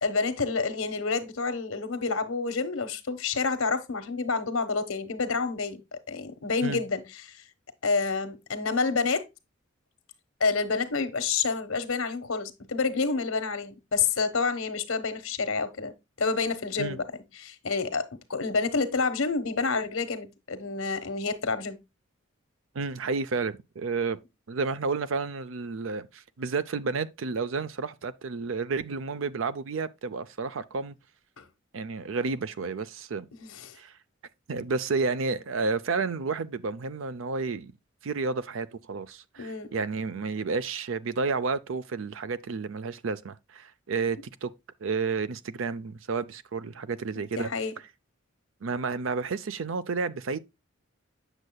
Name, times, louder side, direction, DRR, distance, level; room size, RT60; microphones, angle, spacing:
voice 1, 0.0-5.8 6.1-7.4 7.8-9.3 10.4-15.9 16.2-21.8 31.4-31.5 33.4-33.8 39.4-39.7 47.1-47.7, left 4 dB, 90° left, 1.1 m, -28 dB
voice 2, 22.7-24.2 24.5-30.9 31.7-33.3 33.8-33.9 34.5-37.7 38.0-44.5 44.8-47.5 48.6-50.4, right 4 dB, 70° right, 0.5 m, -31 dB
8.1 x 6.5 x 2.2 m
head